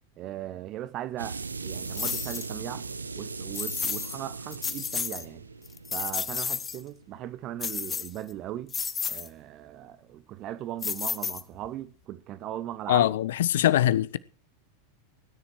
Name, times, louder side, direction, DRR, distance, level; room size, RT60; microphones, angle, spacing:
voice 1, 0.2-2.9 3.2-5.4 5.9-8.7 9.1-13.1, right 12 dB, 35° right, 1.0 m, -38 dB
sound 1, 1.2-7.7, right 4 dB, 75° right, 0.8 m, -39 dB
sound 2, 1.9-2.5 3.5-4.2 4.5-5.2 5.6-6.8 7.6-8.3 8.7-9.3 10.8-11.7, left 6 dB, 20° left, 0.8 m, -32 dB
voice 2, 12.9-14.2, left 12 dB, 60° left, 0.7 m, -22 dB
17.5 x 10.0 x 4.7 m
figure-of-eight pair, 90°, 0 cm